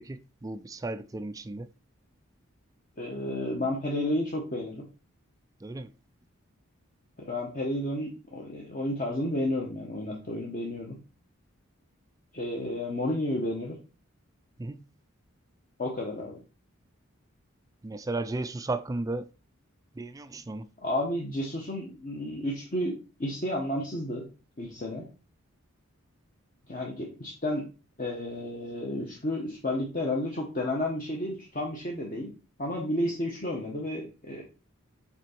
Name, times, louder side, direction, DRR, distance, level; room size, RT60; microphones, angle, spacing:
voice 1, 0.0-1.7 5.6-5.9 14.6-14.8 17.8-19.3 20.0-20.7, right 2 dB, 15° right, 0.3 m, -34 dB
voice 2, 3.0-4.8 7.2-11.0 12.3-13.8 15.8-16.4 20.8-24.3 24.6-25.1 26.7-27.6 28.0-32.3 32.6-34.4, left 1 dB, 40° left, 1.1 m, -31 dB
6.0 x 4.1 x 4.4 m
head